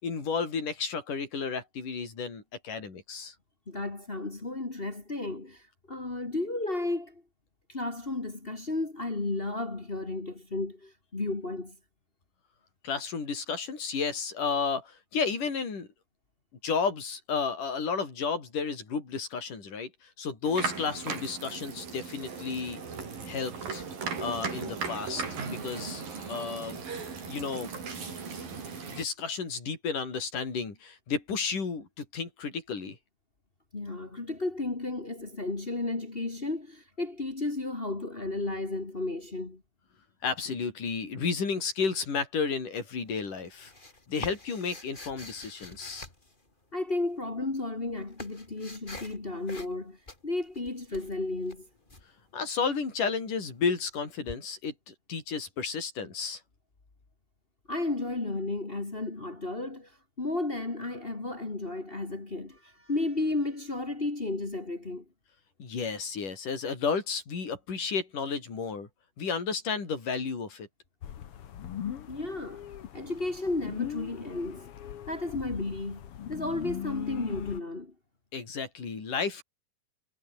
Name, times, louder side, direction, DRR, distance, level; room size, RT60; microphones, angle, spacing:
voice 1, 0.0-3.3 12.8-15.9 16.6-22.8 23.3-23.9 24.2-26.0 26.3-26.8 27.3-27.7 28.8-33.0 40.2-43.7 44.1-46.1 52.3-56.4 65.6-68.9 69.2-70.7 78.3-79.4, left 5 dB, 50° left, 7.2 m, -32 dB
voice 2, 3.7-7.2 7.7-11.8 33.7-39.6 46.7-50.0 50.2-51.7 57.7-59.9 60.2-65.0 72.1-72.6 72.9-74.7 75.1-76.0 76.3-77.9, left 2 dB, 30° left, 1.0 m, -33 dB
sound 1, 20.4-29.0, right 5 dB, 55° right, 6.7 m, -37 dB
sound 2, 43.1-46.9 47.6-49.2 49.5-49.8 50.1-52.0 54.3-54.4, left 2 dB, 15° left, 3.1 m, -45 dB
sound 3, 71.0-77.6, left 10 dB, 75° left, 1.3 m, -39 dB
omnidirectional pair, 4.8 m